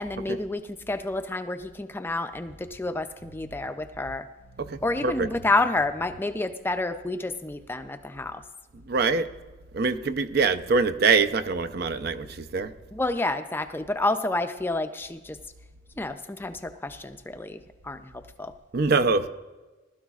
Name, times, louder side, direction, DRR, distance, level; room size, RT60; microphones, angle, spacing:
voice 1, 0.0-4.2 4.8-8.4 12.9-15.4 16.0-18.1 18.4-18.5, left 2 dB, 10° left, 9 dB, 0.4 m, -29 dB
voice 2, 4.6-5.3 8.9-9.3 9.7-12.7 18.7-19.3, right 4 dB, 55° right, 9 dB, 0.5 m, -24 dB
19.5 x 12.5 x 2.4 m, 1.2 s
head